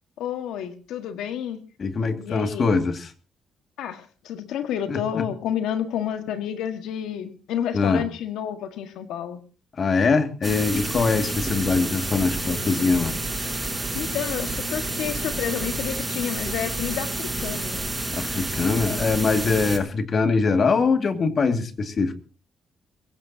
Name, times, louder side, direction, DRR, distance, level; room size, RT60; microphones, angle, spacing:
voice 1, 0.2-1.6 2.2-2.7 3.8-9.4 13.9-17.8, left 9 dB, 85° left, 8 dB, 1.6 m, -30 dB
voice 2, 1.8-3.1 4.9-5.2 7.7-8.0 9.8-13.1 18.2-22.1, left 4 dB, 45° left, 8 dB, 2.1 m, -22 dB
sound 1, 10.4-19.8, right 2 dB, 15° right, 5.6 m, -29 dB
23.5 x 15.5 x 2.8 m, 0.34 s
cardioid pair, 90°, 0 cm